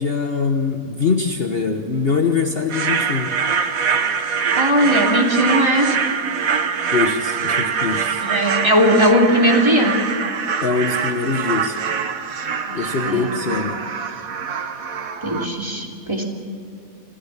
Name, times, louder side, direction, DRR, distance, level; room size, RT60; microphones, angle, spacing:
voice 1, 0.0-3.4 6.9-8.3 10.6-11.8 12.7-13.8, left 5 dB, 40° left, 4 dB, 1.2 m, -23 dB
sound 1, 2.7-15.5, right 6 dB, 65° right, 1.6 m, -24 dB
voice 2, 4.6-6.0 8.2-9.9 12.7-12.8 13.0-13.3 15.2-16.2, equal, 15° right, -1 dB, 2.9 m, -18 dB
26.5 x 15.5 x 7.4 m, 2.6 s
omnidirectional pair, 1.6 m